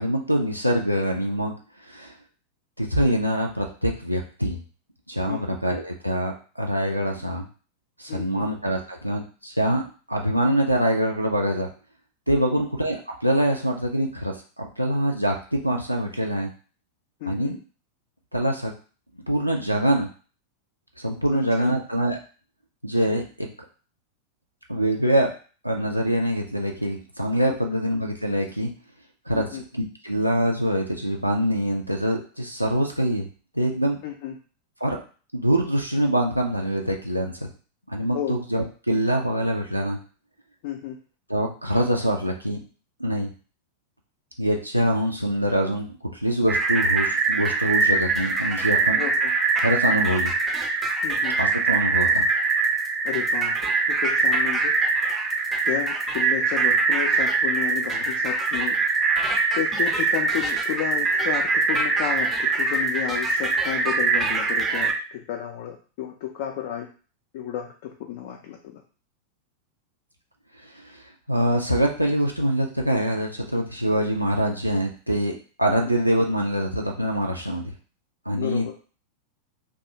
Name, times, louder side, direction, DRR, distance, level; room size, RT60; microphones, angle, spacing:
voice 1, 0.0-1.5 1.9-2.1 2.8-4.6 5.1-7.5 8.0-11.7 12.3-16.5 17.3-17.6 18.3-18.7 19.3-20.1 21.0-22.2 22.8-23.5 24.7-25.3 25.6-28.7 29.3-33.3 33.5-34.0 34.8-35.0 35.3-37.5 37.9-40.0 41.3-42.6 43.0-43.3 44.4-49.0 49.6-50.3 51.4-52.2 70.6-71.0 71.3-77.7 78.3-78.7, equal, 90° right, 1 dB, 0.4 m, -24 dB
voice 2, 8.1-8.5 12.4-12.7 17.2-17.6 21.3-21.7 27.5-27.6 29.3-29.6 34.0-34.4 38.1-38.4 40.6-41.0 49.0-49.3 51.0-51.4 53.0-54.7 55.6-58.8 59.5-66.9 67.3-68.8 75.7-76.0 78.3-78.7, left 10 dB, 50° left, 2 dB, 0.3 m, -32 dB
sound 1, 46.5-64.9, right 4 dB, 20° right, 0.4 m, -23 dB
2.3 x 2.3 x 2.7 m, 0.38 s
figure-of-eight pair, 90°, 0 cm